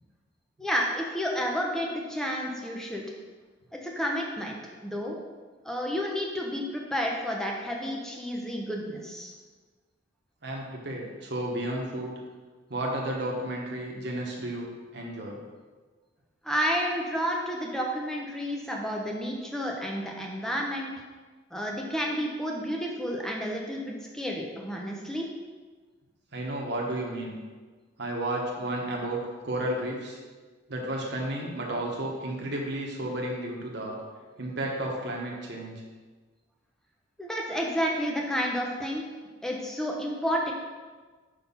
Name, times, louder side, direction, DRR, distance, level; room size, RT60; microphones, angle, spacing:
voice 1, 0.6-3.0 3.7-4.6 4.8-5.1 5.6-9.3 16.4-20.9 21.5-25.3 37.2-39.0 39.4-40.5, equal, 5° left, -1 dB, 0.8 m, -30 dB
voice 2, 10.4-12.1 12.7-15.4 26.3-27.3 28.0-30.2 30.7-34.0 34.4-35.8, right 1 dB, 55° right, -2 dB, 1.2 m, -32 dB
5.7 x 4.2 x 5.5 m, 1.4 s
head